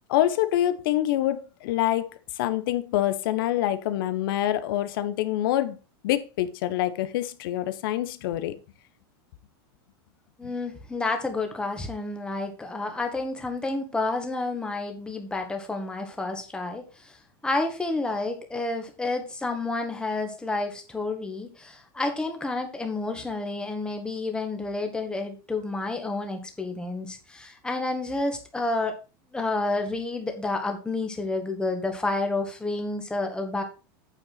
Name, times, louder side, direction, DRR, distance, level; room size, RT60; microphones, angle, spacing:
voice 1, 0.1-2.1 2.4-5.8 6.0-8.5, left 13 dB, 70° left, 1.2 m, -26 dB
voice 2, 10.4-17.2 17.4-28.9 29.3-33.6, left 2 dB, 5° left, 1.9 m, -30 dB
9.0 x 7.0 x 4.1 m
supercardioid pair, 150°, 12 cm